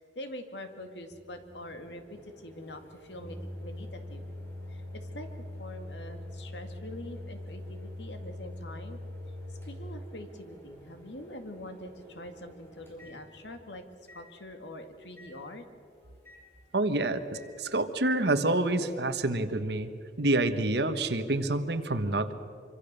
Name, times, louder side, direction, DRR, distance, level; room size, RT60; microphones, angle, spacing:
voice 1, 0.0-4.2 4.7-9.0 9.5-13.8 14.1-15.7, left 1 dB, 80° left, 7 dB, 2.1 m, -44 dB
Microwave oven, 1.1-13.6 14.1-14.2 15.2-15.3 16.2-16.4 17.3-17.5, left 1 dB, 15° left, 4.8 m, -44 dB
voice 2, 16.7-19.9 20.2-22.3, right 2 dB, 65° right, 10 dB, 1.4 m, -27 dB
25.5 x 25.0 x 6.8 m, 2.4 s
head